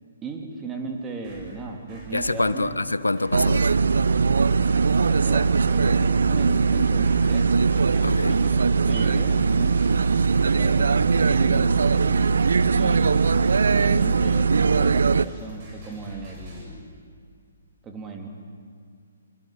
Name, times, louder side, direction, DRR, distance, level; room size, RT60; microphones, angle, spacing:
voice 1, 0.2-2.8 4.9-7.6 7.9-9.9 10.5-12.2 12.7-16.9 17.8-18.3, right 3 dB, 15° right, 3.4 m, -37 dB
sound 1, 1.0-2.7 3.2-16.7, right 1 dB, 35° right, 7.8 m, -43 dB
voice 2, 2.1-3.8 8.0-8.4, left 2 dB, 90° left, 1.2 m, -26 dB
sound 2, 3.3-15.3, right 5 dB, 70° right, 0.6 m, -20 dB
25.5 x 25.0 x 9.1 m
figure-of-eight pair, 135°, 0 cm